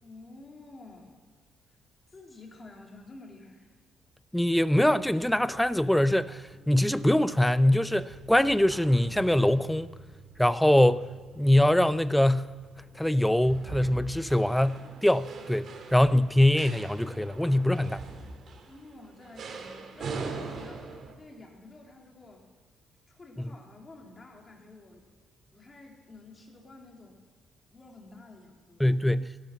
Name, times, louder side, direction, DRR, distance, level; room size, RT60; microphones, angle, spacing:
voice 1, 0.0-1.2 1.7-1.8 2.1-3.7 18.7-22.5 23.1-25.1 25.5-27.2 27.7-28.9, left 2 dB, 30° left, 3.6 m, -50 dB
voice 2, 4.3-9.9 10.4-11.1 11.4-12.5 12.9-18.0 23.4-23.5 28.8-29.3, left 1 dB, 5° left, 0.5 m, -23 dB
sound 1, 4.5-21.1, right 4 dB, 60° right, 2.4 m, -44 dB
15.0 x 12.0 x 7.5 m
cardioid pair, 90°, 0 cm